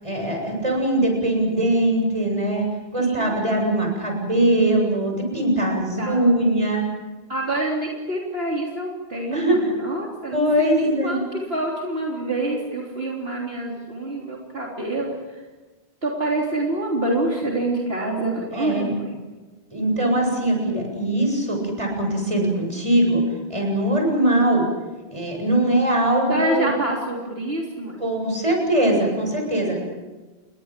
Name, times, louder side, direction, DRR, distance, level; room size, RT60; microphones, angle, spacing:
voice 1, 0.0-6.8 9.3-9.6 10.3-11.2 18.5-18.9 19.7-23.2 23.5-24.6 25.1-26.7 28.0-29.9, right 1 dB, 30° right, 1 dB, 7.8 m, -21 dB
voice 2, 3.0-3.4 5.6-5.7 6.0-6.3 7.3-15.5 16.0-19.2 26.3-28.0, right 1 dB, 65° right, -2 dB, 3.8 m, -27 dB
29.5 x 22.5 x 7.6 m, 1.2 s
omnidirectional pair, 1.1 m